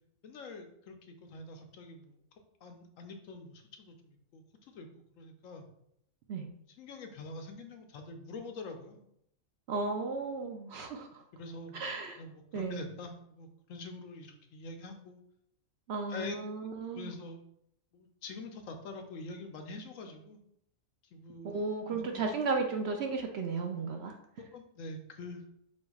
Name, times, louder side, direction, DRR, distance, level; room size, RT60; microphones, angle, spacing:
voice 1, 0.2-2.2 2.6-4.4 4.7-4.9 5.2-5.7 6.8-9.0 11.3-15.2 16.1-16.4 16.9-17.4 17.9-20.4 21.1-21.6 21.9-22.3 24.4-25.4, left 3 dB, 75° left, 5 dB, 1.0 m, -45 dB
voice 2, 9.7-11.2 11.7-12.2 12.5-12.8 15.9-17.1 21.4-24.2, right 4 dB, 65° right, 3 dB, 0.8 m, -34 dB
4.5 x 4.3 x 2.3 m, 0.73 s
omnidirectional pair, 1.4 m